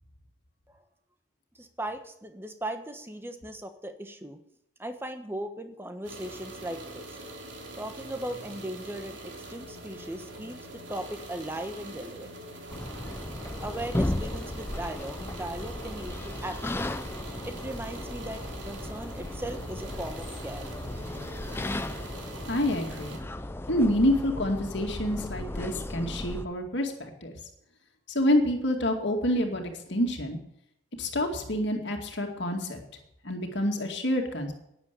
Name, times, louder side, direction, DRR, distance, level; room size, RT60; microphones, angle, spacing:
voice 1, 1.5-4.4 4.8-7.3 7.7-12.3 13.6-20.6, right 1 dB, 10° right, 7 dB, 1.2 m, -38 dB
sound 1, 6.0-23.2, right 2 dB, 65° right, 3.0 m, -43 dB
sound 2, 12.7-26.5, left 1 dB, 10° left, 0.4 m, -35 dB
voice 2, 22.5-23.2 23.7-27.3 28.1-30.4 31.0-32.8 33.2-34.5, left 1 dB, 60° left, 2 dB, 2.3 m, -27 dB
12.0 x 10.0 x 6.9 m, 0.78 s
head